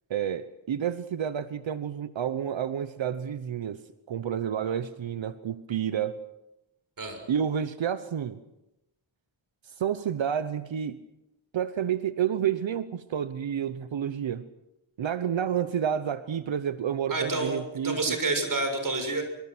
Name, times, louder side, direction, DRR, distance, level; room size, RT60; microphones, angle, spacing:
voice 1, 0.1-3.8 4.1-6.2 7.3-8.4 9.7-11.0 11.5-14.5 15.0-18.2, right 9 dB, 70° right, 12 dB, 1.0 m, -30 dB
voice 2, 17.1-19.2, right 2 dB, 40° right, 5 dB, 6.8 m, -29 dB
25.0 x 25.0 x 6.2 m, 0.90 s
wide cardioid pair, 110°, 48 cm